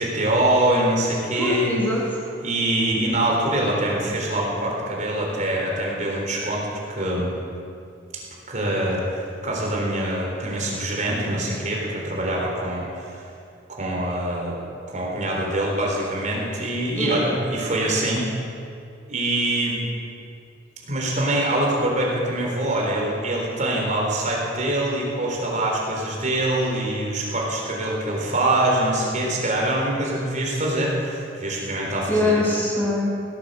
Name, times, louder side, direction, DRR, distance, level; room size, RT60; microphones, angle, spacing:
voice 1, 0.0-1.7 2.4-7.3 8.5-13.2 13.7-14.6 14.9-18.2 19.1-19.8 20.9-32.4, right 1 dB, 40° right, -2 dB, 3.7 m, -24 dB
voice 2, 1.3-2.2 16.9-17.2 32.1-33.1, left 1 dB, 10° left, -4 dB, 2.6 m, -23 dB
17.0 x 12.5 x 6.6 m, 2.4 s
head